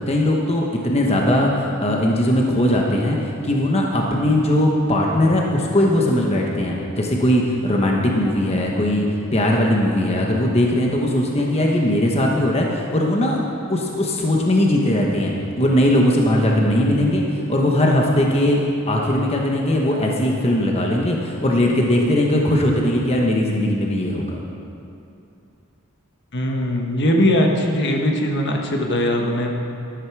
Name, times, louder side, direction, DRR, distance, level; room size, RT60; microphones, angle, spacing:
voice 1, 0.1-9.1 9.3-13.4 13.7-15.3 15.6-17.2 17.5-24.4, left 1 dB, 30° left, -1 dB, 1.1 m, -19 dB
voice 2, 26.3-29.5, equal, 55° left, 1 dB, 1.3 m, -20 dB
13.0 x 13.0 x 4.7 m, 2.6 s
head